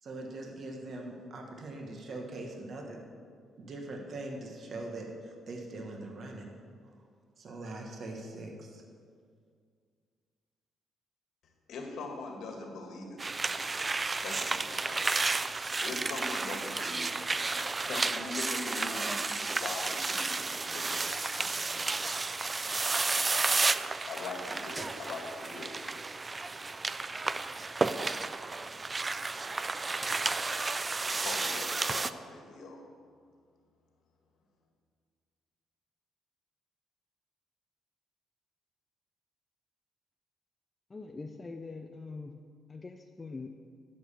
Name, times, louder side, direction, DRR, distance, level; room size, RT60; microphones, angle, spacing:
voice 1, 0.0-3.0 3.6-6.5 7.4-8.8, right 2 dB, 50° right, 2 dB, 1.5 m, -42 dB
voice 2, 11.7-13.7 14.2-15.1 15.8-19.2 19.6-21.9 24.1-25.7 31.0-32.8, left 3 dB, 75° left, 2 dB, 1.9 m, -42 dB
sound 1, 13.2-32.1, right 3 dB, 25° right, 0.4 m, -32 dB
voice 3, 40.9-42.3 42.7-43.5, left 3 dB, 25° left, 4 dB, 0.5 m, -43 dB
11.0 x 5.4 x 7.1 m, 2.1 s
cardioid pair, 90°, 0 cm